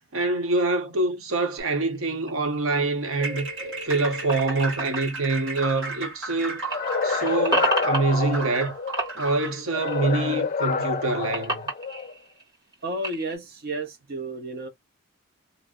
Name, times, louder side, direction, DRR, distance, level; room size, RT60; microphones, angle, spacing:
voice 1, 0.1-3.5 3.8-6.6 7.0-8.8 9.2-11.7, right 3 dB, 85° right, 0.9 m, -25 dB
sound 1, 1.6-6.3 6.6-8.7 8.9-10.4 10.7-13.4, right 2 dB, 20° right, 1.3 m, -32 dB
sound 2, 3.1-9.6, right 3 dB, 65° right, 1.2 m, -34 dB
sound 3, 6.7-9.1 9.7-12.1, left 5 dB, 35° left, 0.4 m, -28 dB
voice 2, 12.8-14.7, right 1 dB, 50° right, 0.7 m, -32 dB
2.6 x 2.0 x 3.5 m
head